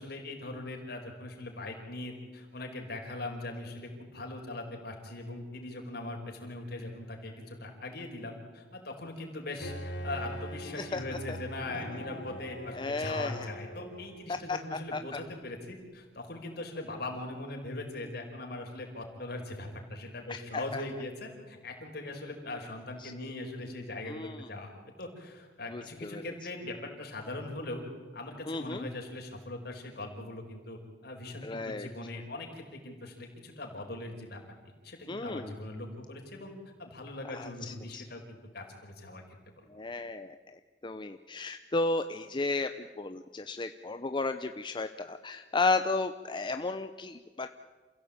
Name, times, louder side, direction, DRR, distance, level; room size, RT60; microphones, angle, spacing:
voice 1, 0.0-24.7 25.0-27.8 28.1-34.4 34.8-36.5 36.8-39.2 39.6-39.7, left 2 dB, 60° left, 2 dB, 5.0 m, -40 dB
Bowed string instrument, 9.6-14.4, equal, 85° left, 3.8 m, -42 dB
voice 2, 12.7-13.5 14.3-15.2 20.3-20.8 23.0-23.1 24.1-24.5 25.7-26.3 28.5-28.9 31.4-31.9 35.1-35.5 37.3-38.0 39.7-47.5, left 3 dB, 25° left, 8 dB, 0.7 m, -34 dB
28.0 x 16.0 x 8.8 m, 1.4 s
head